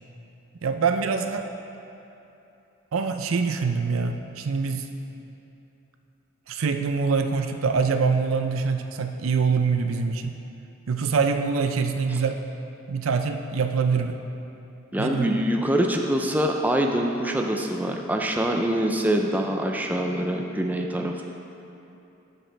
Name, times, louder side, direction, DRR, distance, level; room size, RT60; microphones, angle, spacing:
voice 1, 0.6-1.5 2.9-4.8 6.5-10.3 10.9-12.4 12.9-14.2 15.0-15.3, right 5 dB, 80° right, 7 dB, 0.5 m, -24 dB
voice 2, 14.9-21.2, right 1 dB, 10° right, 2 dB, 0.4 m, -24 dB
12.0 x 6.4 x 3.3 m, 2.9 s
head